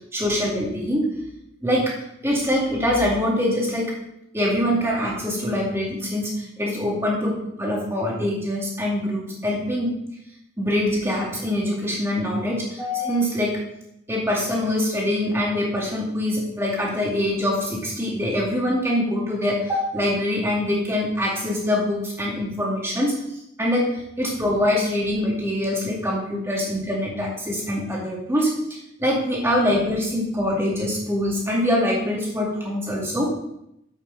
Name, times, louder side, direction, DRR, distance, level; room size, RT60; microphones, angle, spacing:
voice 1, 0.1-1.1 1.6-1.9 2.2-3.9 4.3-9.9 10.6-13.6 14.1-23.2 23.6-28.5 29.0-33.3, left 1 dB, 15° right, -3 dB, 2.3 m, -24 dB
9.5 x 8.1 x 4.0 m, 0.80 s
head